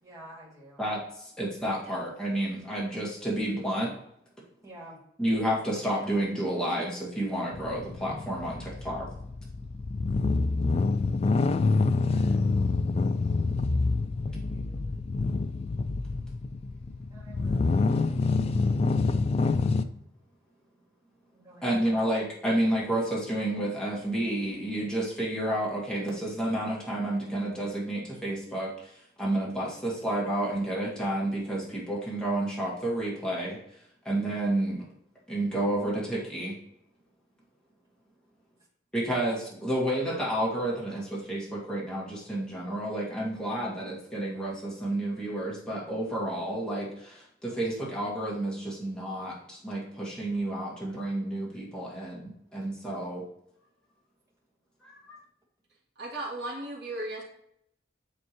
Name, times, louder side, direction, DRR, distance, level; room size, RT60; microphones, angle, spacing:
voice 1, 0.0-0.8 4.6-5.0 8.6-8.7 12.0-12.4 14.3-14.9 17.1-17.8 21.3-21.7, right 1 dB, 15° right, -6 dB, 2.4 m, -50 dB
voice 2, 0.8-3.9 5.2-9.1 21.6-33.6 34.1-34.9 35.3-36.6 38.9-53.2 54.8-55.2, right 1 dB, 5° left, -6 dB, 1.8 m, -30 dB
sound 1, 7.5-19.8, left 3 dB, 35° left, 0.3 m, -27 dB
voice 3, 56.0-57.2, right 1 dB, 65° right, -3 dB, 1.7 m, -36 dB
9.5 x 3.5 x 3.0 m, 0.74 s
head